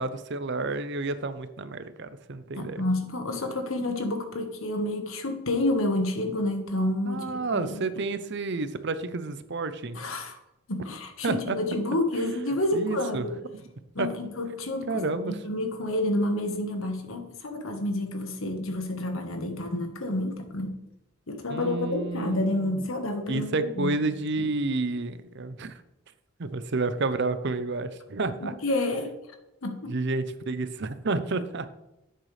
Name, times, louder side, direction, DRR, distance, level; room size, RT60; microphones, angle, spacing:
voice 1, 0.0-2.8 7.1-10.0 11.2-11.6 12.7-13.3 14.0-14.1 14.9-15.4 21.5-22.7 23.3-25.7 26.4-28.5 29.9-31.7, right 3 dB, 55° right, 12 dB, 0.7 m, -30 dB
voice 2, 2.6-7.8 9.9-10.4 10.7-13.4 13.9-20.7 21.3-24.0 24.4-24.5 28.4-29.1 29.6-29.9, left 1 dB, 70° left, 6 dB, 1.4 m, -29 dB
10.5 x 8.9 x 3.3 m, 0.92 s
head